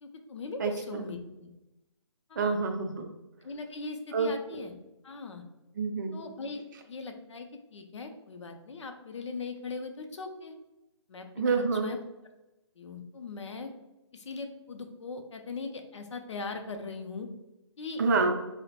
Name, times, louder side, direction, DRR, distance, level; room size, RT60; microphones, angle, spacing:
voice 1, 0.0-1.5 2.3-2.6 3.4-4.7 5.0-5.4 6.1-6.6 6.9-10.5 11.1-11.5 11.8-12.0 12.8-13.7 14.1-17.3 17.8-18.0, left 4 dB, 75° left, 5 dB, 0.5 m, -40 dB
voice 2, 0.6-1.1 2.4-3.1 4.1-4.3 5.8-6.2 11.4-11.9 18.0-18.3, right 4 dB, 40° right, 4 dB, 0.4 m, -27 dB
3.1 x 2.1 x 2.8 m, 0.96 s
figure-of-eight pair, 145°, 15 cm